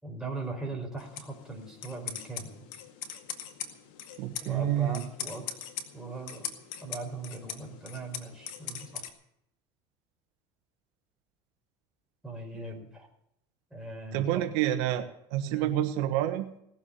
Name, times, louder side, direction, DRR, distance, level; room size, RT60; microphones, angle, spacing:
voice 1, 0.0-2.7 4.4-5.6 5.9-6.5 6.8-9.1 12.2-13.1 13.7-14.5 15.4-15.7, right 3 dB, 5° right, -1 dB, 4.7 m, -40 dB
sound 1, 1.0-9.1, left 9 dB, 80° left, 2.1 m, -41 dB
voice 2, 4.2-5.0 14.1-15.0 15.3-16.5, right 12 dB, 80° right, 7 dB, 1.3 m, -28 dB
18.5 x 7.3 x 9.8 m, 0.75 s
cardioid pair, 125°, 13 cm